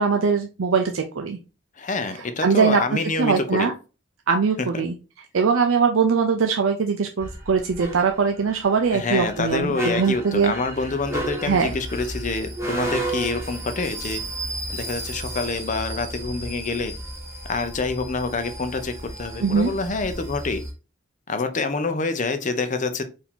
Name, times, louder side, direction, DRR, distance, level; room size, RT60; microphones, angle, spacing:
voice 1, 0.0-1.4 2.4-2.8 3.2-3.7 4.3-4.9 5.3-10.5 11.4-11.7 19.4-19.7, right 5 dB, 75° right, 4 dB, 0.5 m, -21 dB
voice 2, 1.8-3.7 8.9-14.2 14.7-16.9 17.5-20.6 21.3-23.0, left 3 dB, 35° left, 8 dB, 0.6 m, -27 dB
sound 1, 7.2-20.7, right 1 dB, 15° right, 0.9 m, -33 dB
4.7 x 2.7 x 3.6 m, 0.32 s
head